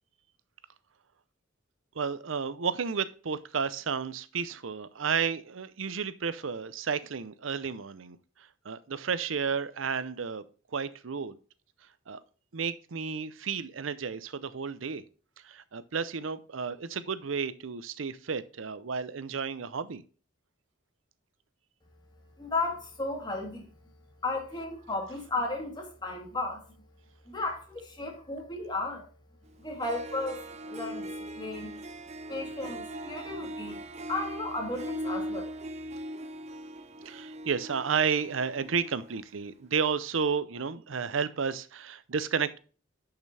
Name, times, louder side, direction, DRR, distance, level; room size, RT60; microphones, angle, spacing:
voice 1, 2.0-8.2 8.6-10.4 10.7-11.4 12.1-12.2 12.5-15.0 15.4-20.0 37.0-42.6, right 6 dB, 90° right, 0.7 m, -32 dB
voice 2, 22.4-23.7 24.2-26.6 27.3-29.1 29.6-31.8 32.3-33.8 34.1-35.5, left 2 dB, 20° left, 2.5 m, -34 dB
Harp, 29.5-29.6 29.8-39.3, right 1 dB, 35° right, 0.7 m, -40 dB
10.5 x 5.9 x 3.3 m
head